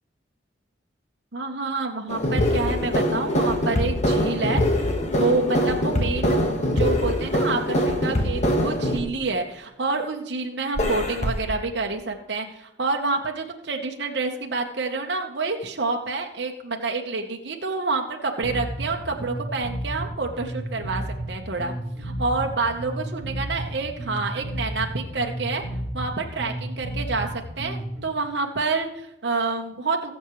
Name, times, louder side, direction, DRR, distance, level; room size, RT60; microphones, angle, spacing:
voice 1, 1.3-6.4 6.8-21.7 22.0-25.6 25.9-27.3 27.6-30.1, right 3 dB, 65° right, 2 dB, 1.0 m, -28 dB
sound 1, 2.1-9.0 10.8-11.4, equal, 35° left, 1.4 m, -23 dB
Bass guitar, 18.4-28.0, right 1 dB, ahead, 4.5 m, -32 dB
20.5 x 7.3 x 3.1 m, 0.91 s
head